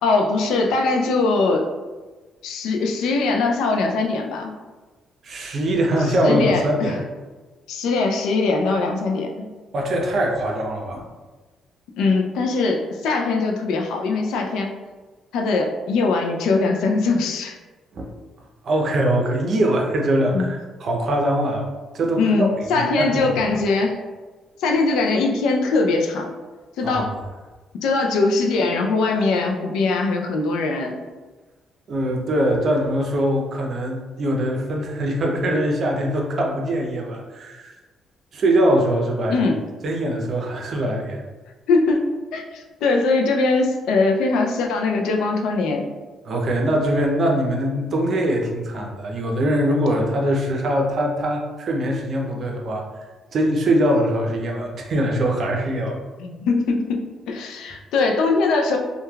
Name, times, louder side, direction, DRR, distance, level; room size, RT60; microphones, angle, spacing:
voice 1, 0.0-1.7 2.4-4.5 6.2-7.0 7.7-9.5 12.0-14.7 15.3-17.6 20.3-20.5 22.2-24.0 24.6-26.3 26.8-27.2 27.8-31.0 39.3-39.6 41.7-45.9 56.2-58.8, left 3 dB, 90° left, 2 dB, 0.4 m, -21 dB
voice 2, 5.2-7.0 9.7-11.1 18.0-18.1 18.6-21.7 21.9-23.2 26.8-27.1 31.9-37.7 38.3-39.4 39.8-41.2 46.2-52.8 53.3-56.0, right 1 dB, 55° right, 0 dB, 0.5 m, -22 dB
3.1 x 2.2 x 2.2 m, 1.3 s
cardioid pair, 90°, 0 cm